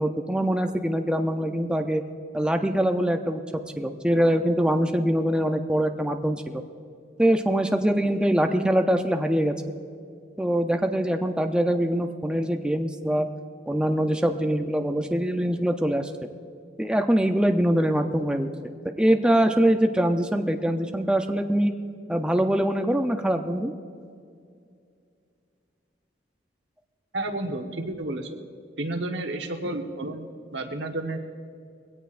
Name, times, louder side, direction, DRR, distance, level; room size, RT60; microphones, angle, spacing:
voice 1, 0.0-2.0 2.3-3.4 3.8-6.6 7.2-9.5 10.4-13.3 13.7-16.1 16.8-21.7 22.1-23.7, equal, 5° right, 5 dB, 0.5 m, -23 dB
voice 2, 27.1-28.4 28.8-31.2, right 2 dB, 85° right, 4 dB, 1.2 m, -31 dB
21.5 x 17.0 x 2.5 m, 2.3 s
head